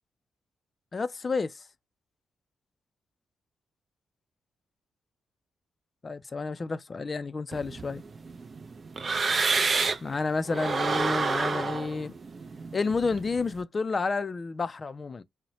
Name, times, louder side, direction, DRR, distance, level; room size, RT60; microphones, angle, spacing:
voice 1, 0.9-1.5 6.0-8.0 10.0-12.1 12.7-15.2, left 4 dB, 35° left, 0.3 m, -30 dB
sound 1, 7.5-10.1 10.5-13.5, right 4 dB, 40° right, 0.4 m, -29 dB
2.6 x 2.1 x 2.9 m
cardioid pair, 85°, 0 cm